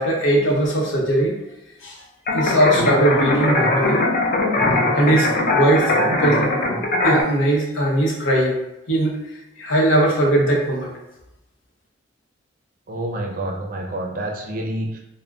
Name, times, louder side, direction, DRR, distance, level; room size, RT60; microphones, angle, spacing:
voice 1, 0.0-1.4 1.8-2.0 2.3-4.0 4.7-5.9 6.2-6.5 7.0-8.6 8.9-9.2 9.6-10.9, right 1 dB, 80° left, -2 dB, 0.7 m, -19 dB
sound 1, 2.3-7.2, left 2 dB, 45° left, 0.4 m, -20 dB
voice 2, 12.9-15.0, right 1 dB, 45° right, 0 dB, 0.4 m, -28 dB
2.4 x 2.1 x 3.4 m, 0.91 s
head